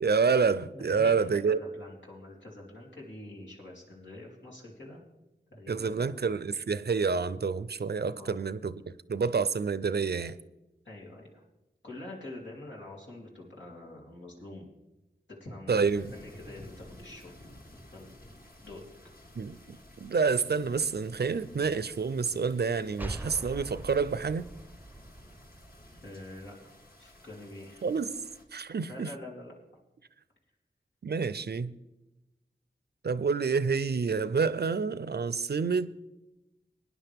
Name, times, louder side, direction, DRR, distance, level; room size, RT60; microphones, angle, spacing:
voice 1, 0.0-1.6 5.7-10.4 15.7-16.1 19.4-24.5 27.8-28.1 28.5-29.1 31.0-31.8 33.0-35.9, right 5 dB, 65° right, 0.5 m, -28 dB
voice 2, 0.7-5.0 5.5-6.1 8.1-8.4 10.8-11.4 11.8-14.7 15.4-17.3 17.9-18.1 18.6-18.8 26.0-26.6 27.0-27.9 28.9-29.5, left 1 dB, 90° left, 3.3 m, -45 dB
sound 1, 15.8-28.4, left 1 dB, 55° left, 1.7 m, -53 dB
sound 2, 23.0-26.5, right 1 dB, 10° right, 0.6 m, -43 dB
19.0 x 9.9 x 3.5 m
wide cardioid pair, 55°, 18 cm